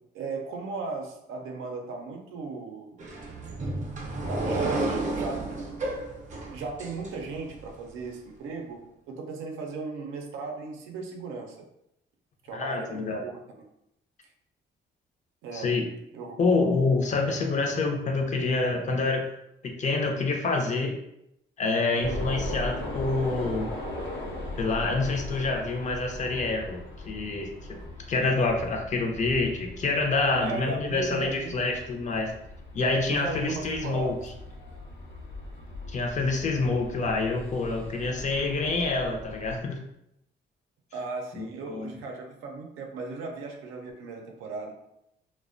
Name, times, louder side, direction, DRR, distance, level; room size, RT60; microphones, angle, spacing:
voice 1, 0.1-3.0 4.3-5.8 6.5-11.7 12.4-13.4 15.4-15.7 16.1-16.4 30.4-31.5 33.1-34.2 40.9-44.7, right 4 dB, 90° right, 2 dB, 0.5 m, -36 dB
sound 1, 3.0-7.7, right 2 dB, 40° right, 0.5 m, -31 dB
voice 2, 12.5-13.2 15.5-15.8 16.4-19.3 19.6-20.9 21.6-23.7 24.6-27.8 28.1-32.3 32.7-34.1 35.9-39.8 41.3-41.9, left 3 dB, 40° left, 2 dB, 0.5 m, -27 dB
sound 2, 22.0-39.6, left 1 dB, 65° left, 0.8 m, -39 dB
2.4 x 2.1 x 2.4 m, 0.80 s
cardioid pair, 90°, 20 cm